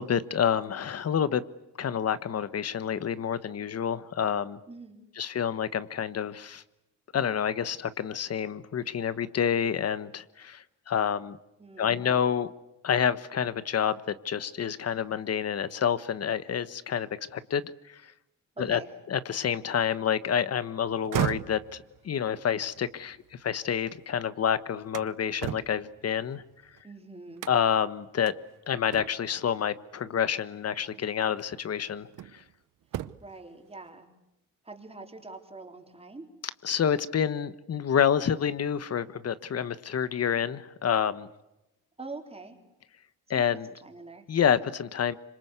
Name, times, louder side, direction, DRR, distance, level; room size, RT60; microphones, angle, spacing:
voice 1, 0.0-1.4 1.8-4.6 5.2-6.6 7.1-11.4 11.8-12.5 12.8-18.1 18.6-18.8 19.1-26.4 27.5-28.3 28.7-32.4 36.6-41.3 43.3-43.7 44.3-45.1, left 8 dB, 50° left, 15 dB, 1.3 m, -28 dB
voice 2, 4.7-5.0 11.6-12.2 18.6-18.9 26.8-27.5 33.2-34.1 34.6-36.3 42.0-42.6 43.3-44.3, right 3 dB, 20° right, 4 dB, 3.9 m, -44 dB
sound 1, 20.9-24.0 24.4-26.8 27.4-27.8 28.3-28.4 28.9-29.4 30.6-30.8 31.4-32.5 32.8-33.4, right 12 dB, 80° right, 0.9 m, -37 dB
27.5 x 26.0 x 8.2 m, 0.91 s
cardioid pair, 115°, 31 cm